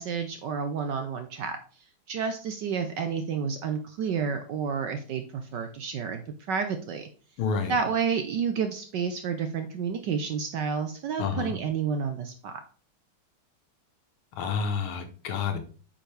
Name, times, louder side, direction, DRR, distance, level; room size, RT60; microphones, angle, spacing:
voice 1, 0.0-1.6 2.1-6.2 6.5-7.1 7.7-12.5, right 6 dB, 70° right, 7 dB, 1.1 m, -30 dB
voice 2, 7.4-7.8 11.2-11.5 14.4-15.6, left 5 dB, 75° left, 7 dB, 1.8 m, -29 dB
8.8 x 5.0 x 3.3 m, 0.40 s
omnidirectional pair, 2.4 m